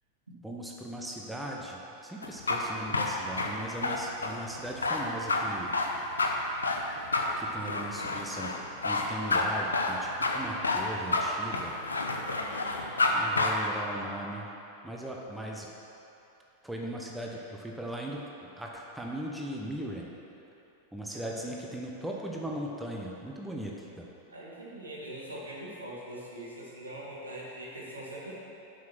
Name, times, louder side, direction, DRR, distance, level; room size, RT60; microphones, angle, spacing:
voice 1, 0.4-5.8 7.4-8.5 8.8-11.7 13.1-14.5 14.8-15.7 16.6-20.1 20.9-24.0, right 1 dB, 5° right, -2 dB, 0.9 m, -38 dB
sound 1, 2.2-13.1 13.4-13.5, left 3 dB, 75° left, 0.7 m, -29 dB
voice 2, 12.3-13.4 21.1-21.5 24.3-28.3, right 1 dB, 75° right, -5 dB, 1.9 m, -43 dB
7.3 x 6.2 x 6.1 m, 2.9 s
figure-of-eight pair, 90°, 0 cm